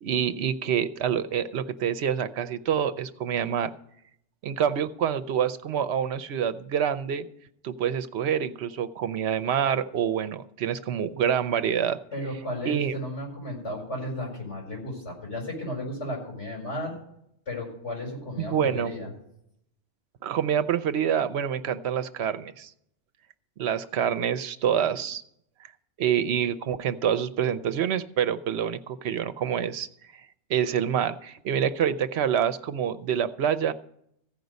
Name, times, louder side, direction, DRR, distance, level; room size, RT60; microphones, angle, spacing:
voice 1, 0.0-3.7 4.4-7.3 7.6-12.0 12.7-13.0 18.4-18.9 20.2-22.7 23.6-25.2 26.0-29.9 30.5-33.7, right 8 dB, 70° right, 12 dB, 0.9 m, -26 dB
voice 2, 12.1-16.9 17.5-19.1, left 1 dB, 85° left, -1 dB, 5.0 m, -34 dB
15.0 x 5.3 x 7.9 m, 0.74 s
omnidirectional pair, 1.2 m